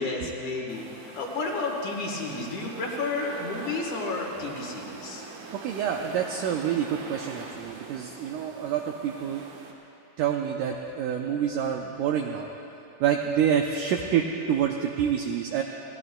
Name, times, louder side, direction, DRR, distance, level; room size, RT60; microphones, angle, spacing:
voice 1, 0.0-5.3, left 3 dB, 60° left, 0 dB, 2.5 m, -31 dB
sound 1, 0.7-9.7, right 4 dB, 65° right, 2.5 m, -43 dB
voice 2, 5.6-9.4 10.2-12.5 13.0-15.6, right 8 dB, 80° right, 2 dB, 1.8 m, -27 dB
25.0 x 16.5 x 2.2 m, 2.8 s
omnidirectional pair, 4.3 m